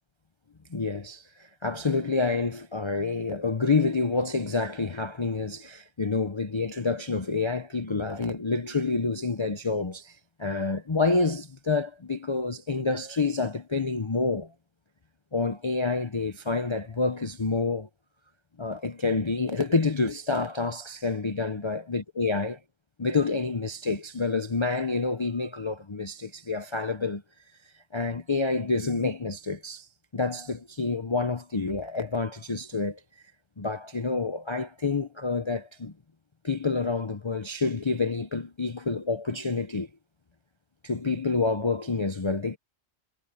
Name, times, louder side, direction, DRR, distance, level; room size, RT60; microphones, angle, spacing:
voice 1, 0.7-14.5 15.3-17.9 18.6-22.6 23.0-27.2 27.9-29.9 30.1-33.0 33.6-35.9 36.4-39.9 40.8-42.6, left 3 dB, 30° left, 0.7 m, -28 dB
omnidirectional pair, 1.3 m